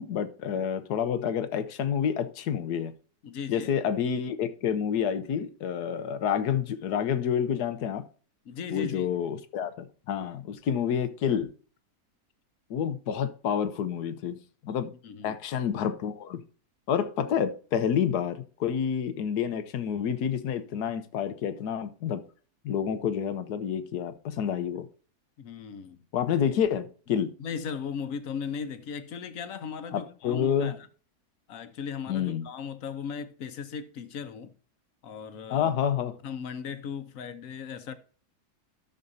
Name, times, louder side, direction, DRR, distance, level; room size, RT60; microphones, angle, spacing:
voice 1, 0.0-2.9 3.5-8.0 8.7-11.5 12.7-14.9 15.2-16.4 16.9-22.2 22.6-24.9 26.1-27.3 29.9-30.7 32.1-32.5 35.5-36.2, left 8 dB, 90° left, 1.4 m, -29 dB
voice 2, 3.2-3.7 8.5-9.2 15.0-15.4 25.4-26.0 27.4-30.8 31.5-34.5 35.0-35.7 36.2-37.9, left 6 dB, 60° left, 1.3 m, -37 dB
12.5 x 6.6 x 2.7 m
omnidirectional pair, 1.6 m